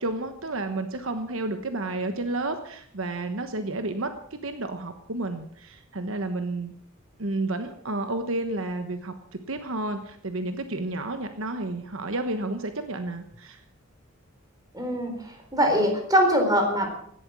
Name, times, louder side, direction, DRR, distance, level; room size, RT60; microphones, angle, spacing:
voice 1, 0.0-4.1 4.4-6.7 7.2-9.1 9.5-13.6, right 2 dB, 65° right, 8 dB, 1.2 m, -31 dB
voice 2, 14.7-16.9, equal, 15° right, 3 dB, 3.9 m, -23 dB
16.5 x 11.5 x 6.2 m, 0.65 s
head